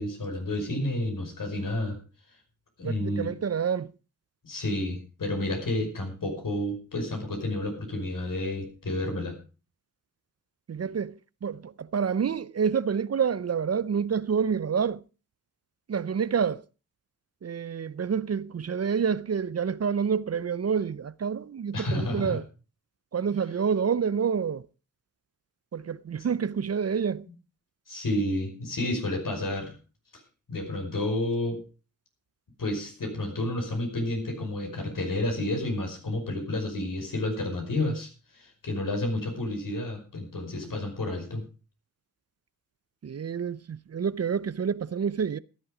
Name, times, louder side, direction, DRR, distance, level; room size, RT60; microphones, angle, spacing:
voice 1, 0.0-2.0 2.8-3.3 4.4-9.4 21.7-22.4 27.9-29.7 30.5-31.6 32.6-41.4, left 1 dB, 70° left, 5.4 m, -30 dB
voice 2, 2.8-3.9 10.7-11.1 11.4-15.0 15.9-16.6 17.4-22.4 23.1-24.6 25.7-27.2 43.0-45.4, right 6 dB, 45° right, 0.6 m, -28 dB
14.5 x 11.0 x 4.9 m
cardioid pair, 65°, 33 cm